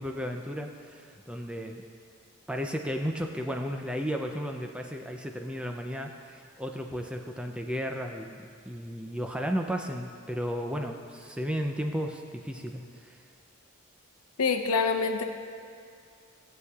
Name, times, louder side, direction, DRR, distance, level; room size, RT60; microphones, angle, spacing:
voice 1, 0.0-1.8 2.5-13.2, equal, 5° right, 3 dB, 0.4 m, -34 dB
voice 2, 14.4-15.2, left 4 dB, 85° left, 6 dB, 0.7 m, -25 dB
15.0 x 8.0 x 2.3 m, 2.2 s
head